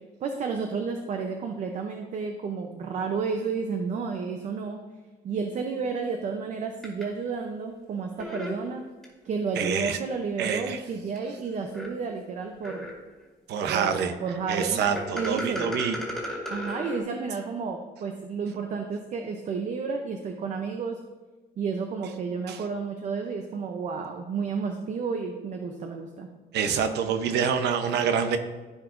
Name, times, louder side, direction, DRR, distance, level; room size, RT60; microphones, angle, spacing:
voice 1, 0.2-4.8 5.2-8.9 9.2-12.9 13.7-14.8 15.1-15.7 16.5-21.0 21.6-26.3, right 5 dB, 45° right, 4 dB, 0.6 m, -31 dB
sound 1, 6.8-7.0 8.2-9.1 9.5-9.6 10.4-10.5 11.2-11.3 11.7-11.9 12.6-13.1 15.0-17.0, left 1 dB, ahead, 1.9 m, -34 dB
voice 2, 9.5-10.0 10.4-10.8 13.5-14.1 14.5-16.0 22.5-22.6 26.5-28.4, right 7 dB, 80° right, 7 dB, 0.8 m, -26 dB
14.0 x 4.9 x 2.6 m, 1.3 s
cardioid pair, 165°, 17 cm